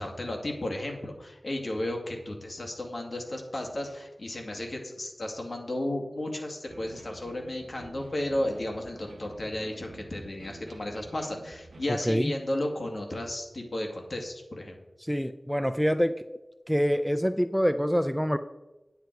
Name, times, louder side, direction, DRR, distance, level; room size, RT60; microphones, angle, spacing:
voice 1, 0.0-14.8, left 1 dB, 55° left, 1 dB, 2.2 m, -34 dB
sound 1, 6.7-12.1, right 2 dB, 85° right, 1.0 m, -49 dB
voice 2, 11.9-12.3 15.0-16.2 16.7-18.4, equal, ahead, 10 dB, 0.4 m, -26 dB
9.5 x 9.2 x 4.6 m, 1.0 s
wide cardioid pair, 80°, 0 cm